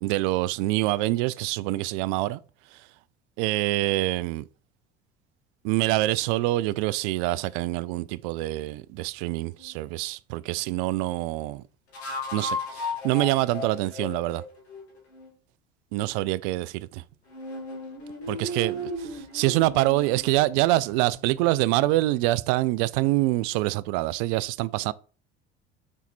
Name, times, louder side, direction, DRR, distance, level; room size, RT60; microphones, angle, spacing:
voice 1, 0.0-2.4 3.4-4.4 5.6-11.6 12.3-14.4 15.9-17.0 18.3-24.9, right 18 dB, 55° right, 0.4 m, -25 dB
sound 1, 9.6-9.8 11.9-15.3 17.3-22.1, left 1 dB, 75° left, 2.4 m, -36 dB
5.7 x 4.5 x 4.2 m
figure-of-eight pair, 65°, 33 cm